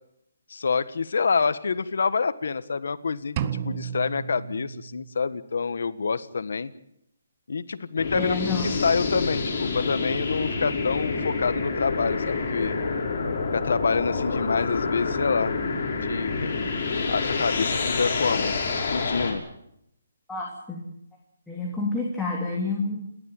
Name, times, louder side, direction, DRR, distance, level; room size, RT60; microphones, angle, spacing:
voice 1, 0.5-3.4 3.6-6.7 7.5-12.8 13.5-15.5 16.0-16.5 17.1-18.5 18.9-19.4, left 5 dB, 70° left, 15 dB, 1.4 m, -27 dB
sound 1, 3.4-5.3, right 9 dB, 25° right, 1.0 m, -33 dB
sound 2, 8.0-19.3, left 4 dB, 40° left, 6.1 m, -28 dB
voice 2, 8.1-8.6 20.3-20.8 21.5-23.0, left 3 dB, 5° left, -4 dB, 3.1 m, -29 dB
29.5 x 12.5 x 9.0 m, 0.77 s
hypercardioid pair, 165°, 0 cm